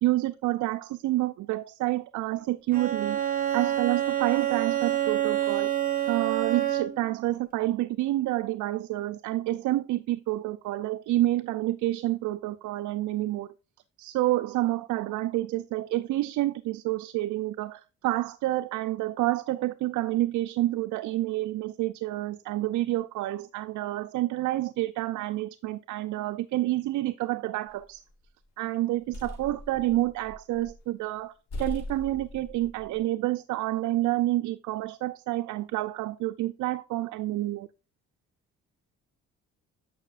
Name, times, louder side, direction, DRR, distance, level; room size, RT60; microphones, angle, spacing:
voice 1, 0.0-3.2 3.5-5.7 6.1-13.5 14.0-28.0 28.6-31.3 31.6-37.7, right 16 dB, 75° right, 0.5 m, -28 dB
Bowed string instrument, 2.7-7.1, right 12 dB, 30° right, 1.5 m, -27 dB
sound 1, 27.7-28.3 28.8-30.9 31.2-31.3 31.5-33.0, left 1 dB, 65° left, 2.8 m, -40 dB
8.7 x 5.6 x 2.4 m
cardioid pair, 90°, 30 cm